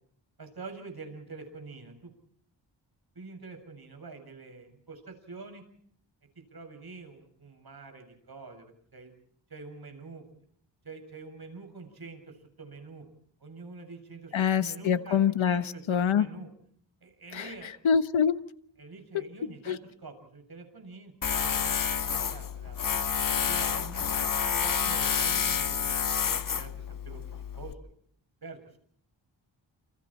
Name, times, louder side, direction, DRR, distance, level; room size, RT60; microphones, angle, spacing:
voice 1, 0.4-2.1 3.1-5.6 6.5-9.1 9.5-10.2 10.8-13.0 13.4-16.5 17.0-17.7 18.8-22.9 23.3-24.0 24.6-27.2 27.6-27.9 28.4-28.8, right 4 dB, 50° right, 7.7 m, -46 dB
voice 2, 14.3-15.6 15.9-16.3 17.3-17.5 17.8-18.5 19.7-19.8, left 7 dB, 90° left, 1.4 m, -25 dB
Tools, 21.2-27.7, left 7 dB, 45° left, 1.0 m, -29 dB
29.0 x 29.0 x 4.4 m
wide cardioid pair, 85°, 46 cm